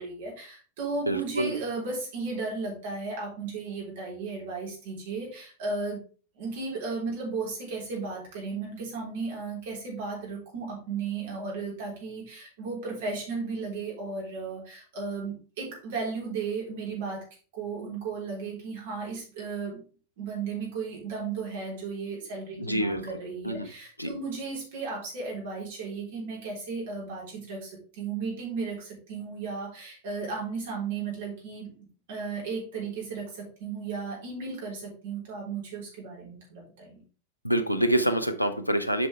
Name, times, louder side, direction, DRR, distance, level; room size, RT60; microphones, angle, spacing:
voice 1, 0.0-6.0 6.4-17.2 17.5-19.8 20.2-31.8 32.1-37.0, right 4 dB, 55° right, -2 dB, 3.7 m, -35 dB
voice 2, 1.1-1.5 22.6-23.0 23.4-23.7 24.0-24.1 37.4-39.1, right 1 dB, 90° left, 10 dB, 0.7 m, -26 dB
7.8 x 5.3 x 3.5 m, 0.38 s
figure-of-eight pair, 90°, 0 cm